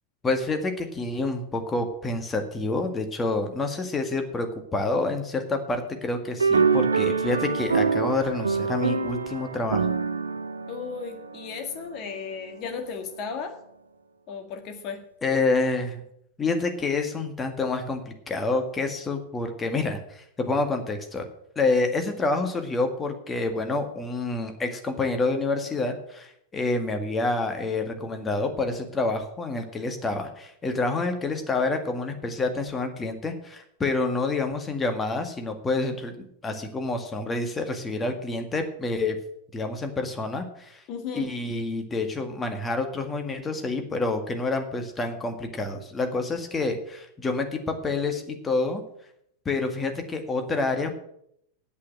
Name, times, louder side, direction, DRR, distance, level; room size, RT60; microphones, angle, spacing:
voice 1, 0.2-4.5 4.7-9.9 15.2-16.0 16.4-21.2 21.6-39.2 39.5-40.8 41.1-48.8 49.5-50.9, left 3 dB, 15° left, 6 dB, 1.9 m, -28 dB
sound 1, 6.4-12.0, right 5 dB, 75° right, 0.8 m, -25 dB
voice 2, 10.7-13.6 14.3-15.0 40.9-41.3, left 6 dB, 40° left, 6 dB, 2.0 m, -35 dB
8.6 x 8.5 x 8.8 m, 0.73 s
figure-of-eight pair, 90°, 0 cm